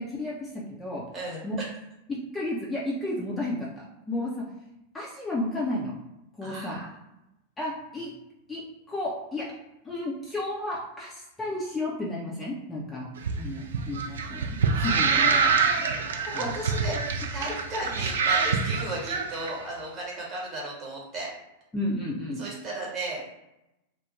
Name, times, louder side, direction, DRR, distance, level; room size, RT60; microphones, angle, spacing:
voice 1, 0.0-1.0 1.4-1.6 2.1-4.4 4.9-5.9 6.4-6.8 7.6-8.1 8.5-8.6 8.9-9.5 9.8-13.1 13.4-15.8 16.3-16.5 21.7-22.4, left 1 dB, 10° left, -4 dB, 0.4 m, -32 dB
voice 2, 1.1-1.4 6.4-6.9 16.3-21.3 22.4-23.3, right 1 dB, 30° right, -3 dB, 1.0 m, -35 dB
sound 1, 13.2-19.5, right 5 dB, 65° right, 0.3 m, -26 dB
2.3 x 2.0 x 3.0 m, 0.91 s
figure-of-eight pair, 90°, 0 cm